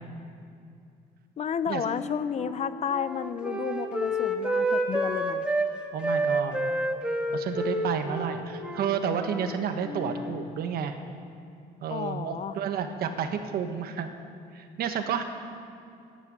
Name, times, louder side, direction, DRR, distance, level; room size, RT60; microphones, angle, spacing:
voice 1, 1.4-5.5 11.9-12.5, left 8 dB, 40° left, 14 dB, 0.6 m, -32 dB
Wind instrument woodwind instrument, 1.8-5.7 6.0-9.6 9.8-10.4, right 1 dB, 5° right, 1.3 m, -29 dB
voice 2, 5.9-6.6 7.3-11.0 11.8-14.1 14.5-15.2, right 7 dB, 65° right, 7 dB, 1.3 m, -30 dB
11.5 x 8.6 x 9.1 m, 2.5 s
cardioid pair, 110°, 17 cm